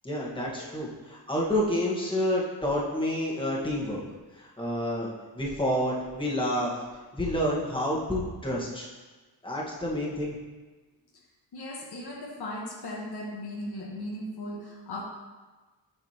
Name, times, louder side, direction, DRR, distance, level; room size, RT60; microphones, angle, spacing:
voice 1, 0.0-4.0 4.4-5.1 5.3-6.7 7.1-8.9 9.4-10.3, equal, 10° left, -4 dB, 1.6 m, -29 dB
voice 2, 11.5-15.0, left 1 dB, 60° left, -3 dB, 1.4 m, -37 dB
7.7 x 4.9 x 3.0 m, 1.3 s
cardioid pair, 65°, 43 cm